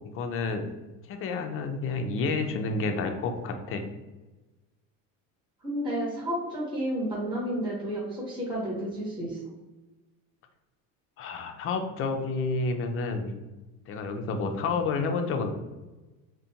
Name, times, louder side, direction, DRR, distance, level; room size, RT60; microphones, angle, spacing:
voice 1, 0.1-0.7 1.1-3.8 11.2-13.3 13.9-15.5, left 3 dB, 35° left, 5 dB, 0.4 m, -29 dB
voice 2, 5.6-9.4, equal, 10° right, -7 dB, 1.0 m, -31 dB
2.5 x 2.1 x 2.7 m, 1.1 s
supercardioid pair, 95°, 40 cm